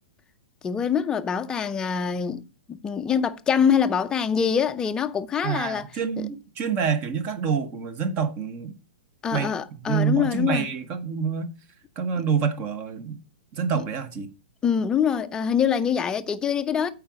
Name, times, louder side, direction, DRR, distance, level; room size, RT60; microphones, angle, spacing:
voice 1, 0.6-5.9 6.2-6.3 9.2-10.7 14.6-16.9, left 7 dB, 15° left, 0.6 m, -24 dB
voice 2, 5.4-8.8 9.3-9.5 9.8-11.5 12.0-13.2 13.5-14.3, right 6 dB, 30° right, 1.2 m, -27 dB
8.7 x 4.7 x 6.2 m
hypercardioid pair, 150°, 6 cm